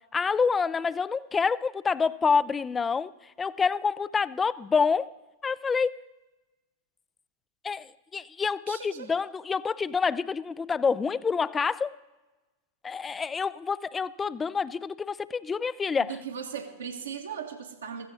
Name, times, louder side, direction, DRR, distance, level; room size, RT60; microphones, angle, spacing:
voice 1, 0.1-5.1 5.4-6.0 7.6-11.9 12.8-16.2, left 5 dB, 15° left, 19 dB, 0.4 m, -27 dB
voice 2, 8.7-9.1 16.0-18.1, right 7 dB, 70° right, 3 dB, 1.5 m, -38 dB
15.5 x 15.0 x 4.1 m, 1.1 s
figure-of-eight pair, 90°, 0 cm